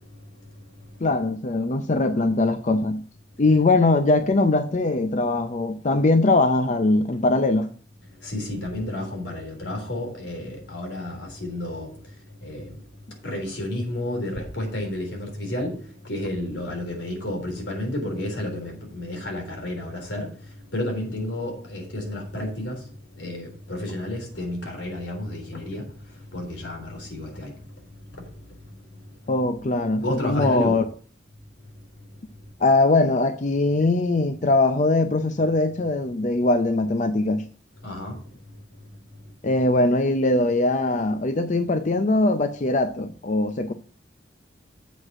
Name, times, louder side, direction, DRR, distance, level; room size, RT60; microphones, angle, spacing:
voice 1, 1.0-3.0 3.4-7.7 29.3-30.8 32.6-37.4 39.4-43.7, left 2 dB, 40° left, 0.5 m, -21 dB
voice 2, 8.2-11.9 12.4-12.7 13.2-15.8 16.0-20.3 20.7-22.8 23.2-25.8 26.3-27.5 28.1-28.2 30.0-30.8 37.8-38.2, left 1 dB, 85° left, 3.7 m, -31 dB
8.0 x 4.9 x 7.4 m
head